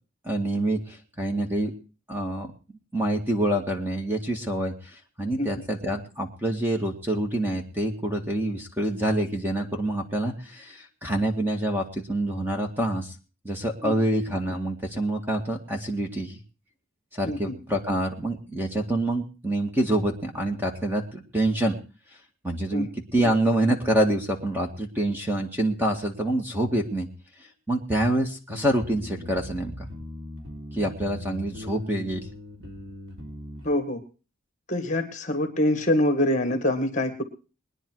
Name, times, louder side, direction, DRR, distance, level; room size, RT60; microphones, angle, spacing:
voice 1, 0.2-1.7 2.1-2.5 2.9-13.2 13.4-16.4 17.1-21.8 22.4-27.1 27.7-29.9 30.7-32.2, right 1 dB, 10° right, 3 dB, 1.8 m, -26 dB
sound 1, 28.5-33.7, left 1 dB, 80° right, 3.6 m, -40 dB
voice 2, 33.6-34.0 34.7-37.2, left 1 dB, 35° left, 7 dB, 1.9 m, -25 dB
21.5 x 10.0 x 4.8 m, 0.36 s
head